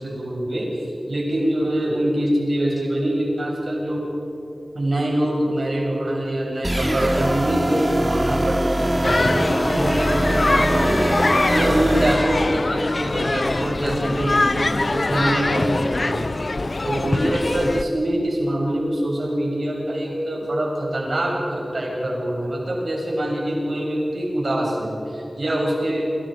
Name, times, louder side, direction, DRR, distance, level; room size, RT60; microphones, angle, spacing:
voice 1, 0.0-4.0 4.7-16.3 16.8-26.1, right 1 dB, 65° right, -2 dB, 8.0 m, -24 dB
sound 1, 6.6-12.1, right 1 dB, 20° right, 2.9 m, -22 dB
sound 2, 9.0-17.8, left 2 dB, 50° left, 0.8 m, -23 dB
28.5 x 27.0 x 5.4 m, 3.0 s
wide cardioid pair, 65°, 0 cm